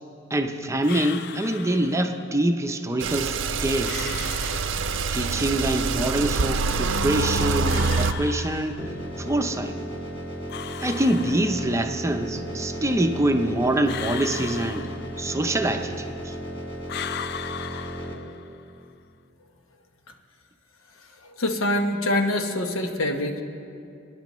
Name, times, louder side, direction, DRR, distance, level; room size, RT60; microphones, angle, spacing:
voice 1, 0.3-4.1 5.1-8.8 9.2-9.7 10.8-14.9 15.2-16.4, right 1 dB, 15° right, 5 dB, 0.5 m, -25 dB
sound 1, 0.8-2.3 3.8-5.3 7.7-9.2 10.5-12.0 13.9-15.6 16.9-18.7, left 9 dB, 55° left, 0.3 m, -37 dB
sound 2, 3.0-8.1, right 4 dB, 65° right, 0.5 m, -25 dB
sound 3, 8.8-18.1, right 1 dB, 30° left, 1.8 m, -34 dB
voice 2, 21.0-23.4, left 1 dB, 90° left, 5 dB, 1.0 m, -25 dB
25.5 x 10.5 x 3.1 m, 2.6 s
head